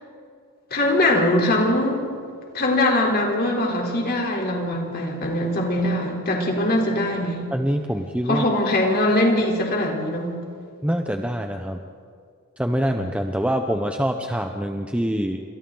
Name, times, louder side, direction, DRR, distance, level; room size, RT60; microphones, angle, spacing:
voice 1, 0.7-2.1 2.5-7.4 8.3-10.3, left 1 dB, 45° left, 0 dB, 3.7 m, -22 dB
voice 2, 7.5-8.4 10.8-11.8 12.6-15.4, equal, 5° right, 4 dB, 0.7 m, -25 dB
28.5 x 25.5 x 3.9 m, 2.2 s
head